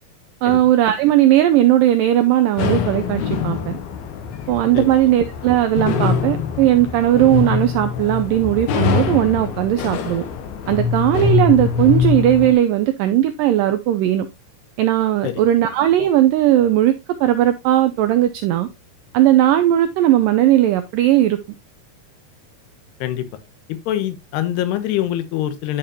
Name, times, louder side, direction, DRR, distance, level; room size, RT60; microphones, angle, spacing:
voice 1, 0.4-3.8 4.5-10.3 10.7-14.3 14.8-16.9 17.2-18.7 19.1-21.4, right 13 dB, 85° right, 1.9 m, -17 dB
sound 1, 2.6-12.5, left 6 dB, 75° left, 2.9 m, -23 dB
voice 2, 23.7-25.8, left 12 dB, 90° left, 3.0 m, -24 dB
12.0 x 5.0 x 2.8 m
omnidirectional pair, 4.6 m